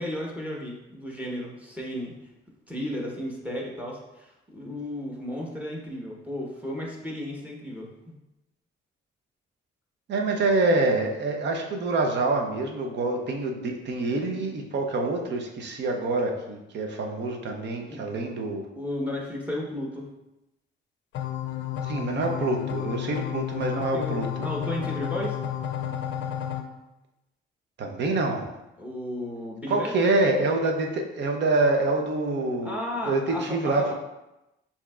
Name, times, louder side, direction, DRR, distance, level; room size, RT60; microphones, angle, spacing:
voice 1, 0.0-2.1 2.7-7.9 17.9-18.0 18.7-20.1 23.9-25.4 28.8-29.9 32.6-33.9, left 1 dB, 5° right, -2 dB, 1.0 m, -34 dB
voice 2, 10.1-18.6 21.8-24.5 27.8-28.5 29.7-32.7 33.1-33.9, right 2 dB, 60° right, 3 dB, 0.8 m, -26 dB
sound 1, 21.1-26.6, left 10 dB, 65° left, 0.5 m, -31 dB
6.7 x 2.8 x 2.4 m, 0.94 s
cardioid pair, 90°, 20 cm